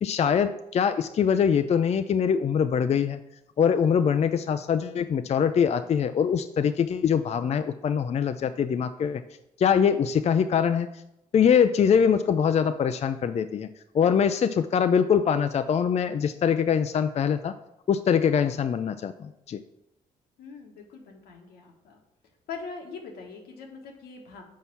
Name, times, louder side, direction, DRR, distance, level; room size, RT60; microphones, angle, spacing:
voice 1, 0.0-3.2 3.6-9.2 9.6-10.9 11.3-13.7 13.9-17.5 17.9-19.6, left 7 dB, 45° left, 9 dB, 0.4 m, -23 dB
voice 2, 20.4-22.0 22.5-24.4, left 5 dB, 80° left, 2 dB, 1.2 m, -42 dB
5.5 x 4.2 x 5.8 m, 0.85 s
supercardioid pair, 50°, 16 cm